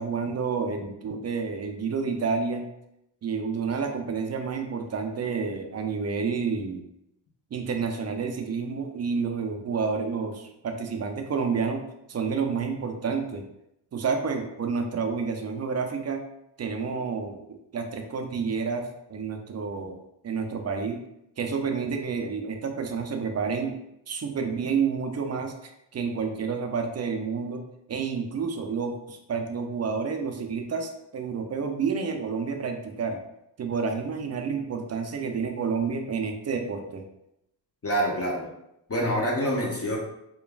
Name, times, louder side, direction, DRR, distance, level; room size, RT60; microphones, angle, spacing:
voice 1, 0.0-2.7 3.2-6.8 7.5-11.8 12.1-13.4 13.9-16.2 16.6-20.0 20.2-21.0 21.4-23.8 24.1-27.6 27.9-33.2 33.6-37.1, right 5 dB, 35° right, 5 dB, 0.4 m, -29 dB
voice 2, 37.8-38.5 38.9-40.0, equal, 30° left, -3 dB, 0.7 m, -26 dB
3.1 x 2.3 x 2.3 m, 0.82 s
cardioid pair, 60°, 47 cm